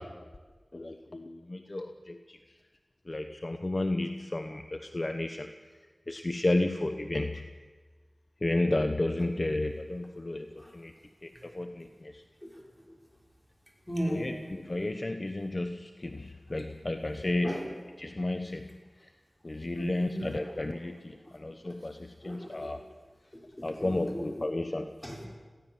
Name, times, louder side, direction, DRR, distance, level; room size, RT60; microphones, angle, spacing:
voice 1, 0.7-2.2 3.1-5.5 6.1-7.4 8.4-10.5 10.7-10.9 11.2-11.9 14.1-17.6 18.0-18.7 19.4-22.8 23.6-24.9, left 2 dB, 45° left, 7 dB, 1.0 m, -32 dB
voice 2, 13.9-14.3 17.4-17.7 19.7-20.5 22.2-22.8 23.3-24.5 25.0-25.3, equal, 15° left, -1 dB, 5.7 m, -36 dB
22.0 x 15.5 x 7.5 m, 1.4 s
wide cardioid pair, 45°, 0 cm